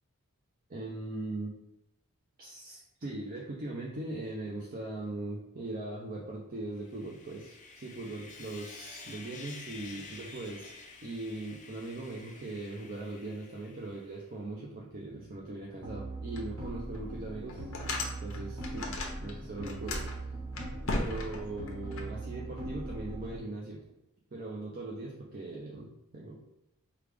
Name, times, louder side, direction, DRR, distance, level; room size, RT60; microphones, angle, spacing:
voice 1, 0.7-1.5 2.4-10.7 11.0-17.7 18.2-20.1 20.8-23.9 24.3-26.4, right 2 dB, 40° right, -3 dB, 0.6 m, -40 dB
Sawing, 6.8-14.2, left 4 dB, 35° left, 0.5 m, -50 dB
sound 1, 15.8-23.4, right 2 dB, 75° right, 1.4 m, -40 dB
sound 2, 16.3-16.4 16.9-17.0 17.5-19.3 19.6-22.0, left 2 dB, 65° left, 0.8 m, -35 dB
4.9 x 2.4 x 3.4 m, 0.86 s
head